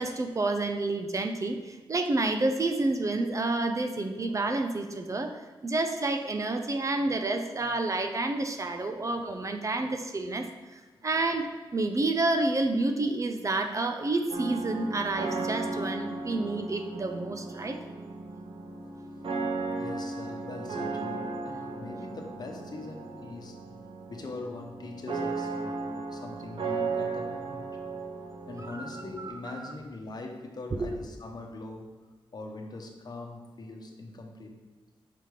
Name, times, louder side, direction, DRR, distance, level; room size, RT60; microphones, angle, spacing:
voice 1, 0.0-17.8 28.6-29.6, right 2 dB, 35° right, 6 dB, 0.5 m, -29 dB
sound 1, 14.3-29.3, right 3 dB, 65° right, 1.0 m, -36 dB
voice 2, 19.8-23.6 24.1-27.7 28.5-31.9 32.3-34.6, left 2 dB, 45° left, 2 dB, 1.0 m, -42 dB
5.8 x 5.3 x 4.9 m, 1.3 s
wide cardioid pair, 130°, 9 cm